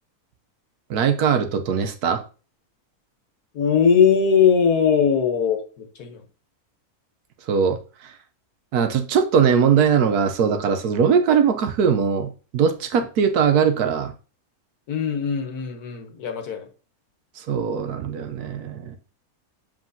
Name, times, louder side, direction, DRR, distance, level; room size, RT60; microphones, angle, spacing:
voice 1, 0.9-2.2 7.5-7.8 8.7-14.1 17.5-19.0, right 7 dB, 85° right, 1.3 m, -20 dB
voice 2, 3.5-6.2 14.9-16.7, left 7 dB, 80° left, 1.6 m, -20 dB
7.4 x 5.1 x 2.7 m
omnidirectional pair, 1.6 m